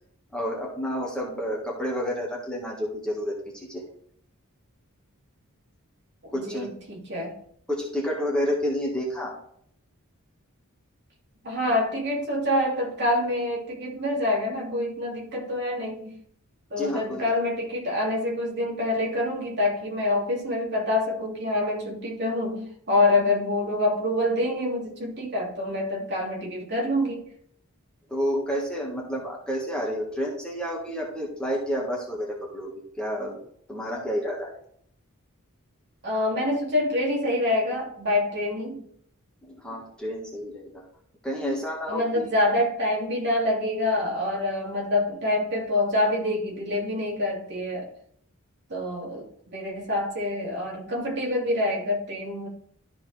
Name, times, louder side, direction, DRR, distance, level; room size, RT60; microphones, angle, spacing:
voice 1, 0.3-3.8 6.3-6.7 7.7-9.3 16.8-17.2 28.1-33.4 33.7-34.5 39.4-40.8 41.2-42.3, equal, 5° left, 1.8 m, -30 dB
voice 2, 6.2-7.4 11.4-16.2 16.7-27.3 36.0-38.9 41.9-47.9 48.7-52.5, left 1 dB, 50° right, 2.7 m, -26 dB
13.0 x 4.6 x 3.4 m
head